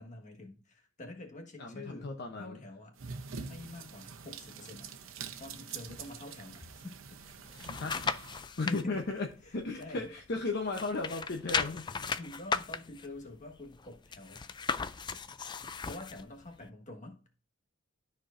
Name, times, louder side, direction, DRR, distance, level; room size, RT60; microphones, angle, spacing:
voice 1, 0.0-3.0 3.4-4.9 5.4-7.4 8.6-9.0 9.4-10.1 12.2-14.5 15.8-17.2, left 2 dB, 40° left, 1.4 m, -46 dB
voice 2, 1.6-2.6 7.8-8.0 8.6-9.3 9.5-11.9, left 3 dB, 55° left, 0.8 m, -35 dB
sound 1, 3.0-8.4, right 5 dB, 75° right, 0.8 m, -45 dB
sound 2, 7.2-8.8 9.3-10.4 10.7-16.2 16.7-16.8, left 5 dB, 20° left, 0.3 m, -36 dB
12.5 x 4.5 x 2.5 m
head